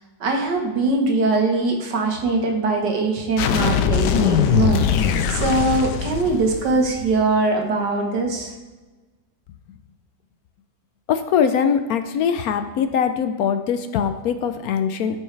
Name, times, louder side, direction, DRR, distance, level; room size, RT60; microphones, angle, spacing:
voice 1, 0.2-4.8 5.3-8.5, right 3 dB, 85° right, 2 dB, 1.9 m, -21 dB
sound 1, 3.4-7.1, left 8 dB, 85° left, 1.3 m, -21 dB
voice 2, 11.1-15.2, left 7 dB, 70° left, 9 dB, 1.0 m, -22 dB
13.5 x 6.3 x 3.3 m, 1.2 s
omnidirectional pair, 1.8 m